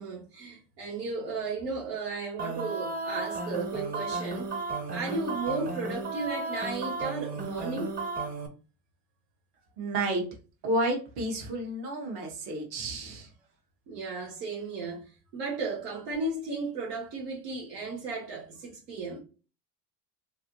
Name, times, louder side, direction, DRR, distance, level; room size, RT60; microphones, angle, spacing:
voice 1, 0.0-4.5 4.9-7.9 13.9-15.0 15.3-19.2, right 3 dB, 85° right, 1.3 m, -34 dB
sound 1, 2.4-8.5, right 3 dB, 20° right, 0.7 m, -34 dB
voice 2, 9.8-10.2 10.6-13.3, right 1 dB, 65° right, 1.5 m, -31 dB
3.2 x 2.6 x 2.9 m
supercardioid pair, 90°, 46 cm